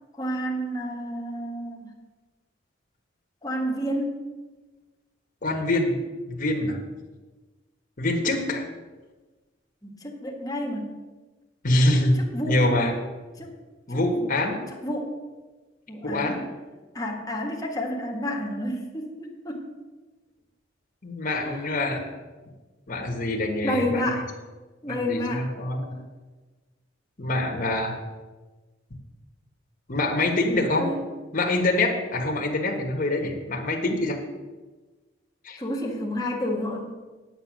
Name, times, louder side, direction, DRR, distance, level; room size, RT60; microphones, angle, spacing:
voice 1, 0.2-1.9 3.4-4.2 9.8-11.0 12.2-12.6 13.4-13.5 13.9-14.3 14.8-15.2 15.9-16.4 16.9-19.7 21.4-21.5 23.6-24.3 24.8-25.5 30.8-31.0 35.6-36.9, equal, 20° left, 1 dB, 1.6 m, -30 dB
voice 2, 5.4-6.0 6.3-6.8 8.0-8.6 11.6-12.2 12.5-12.9 13.9-14.6 16.0-16.4 21.0-22.1 22.9-24.0 24.9-26.0 27.2-28.0 29.9-30.9 31.3-34.2 35.4-35.6, left 2 dB, 45° left, 1 dB, 1.4 m, -25 dB
9.0 x 8.0 x 6.3 m, 1.3 s
head